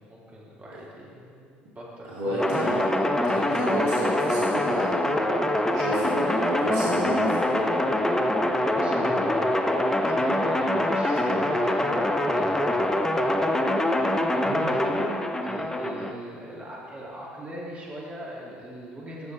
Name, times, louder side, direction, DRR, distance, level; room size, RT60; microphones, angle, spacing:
voice 1, 0.0-2.5 8.5-9.6 10.0-13.5 13.9-19.3, right 1 dB, 25° right, -5 dB, 2.2 m, -40 dB
voice 2, 2.1-5.3 5.6-7.5, right 1 dB, 65° right, -6 dB, 1.6 m, -32 dB
sound 1, 2.4-16.1, left 1 dB, 10° left, 0.6 m, -24 dB
9.5 x 6.6 x 3.2 m, 2.2 s
figure-of-eight pair, 60°, 6 cm